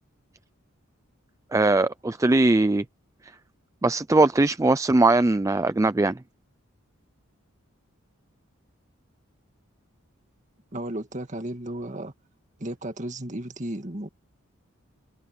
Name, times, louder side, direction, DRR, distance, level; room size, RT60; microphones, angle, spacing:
voice 1, 1.5-2.8 3.8-6.2, right 2 dB, 15° right, 0.3 m, -20 dB
voice 2, 10.7-12.1 12.6-14.1, right 1 dB, 35° right, 2.0 m, -34 dB
head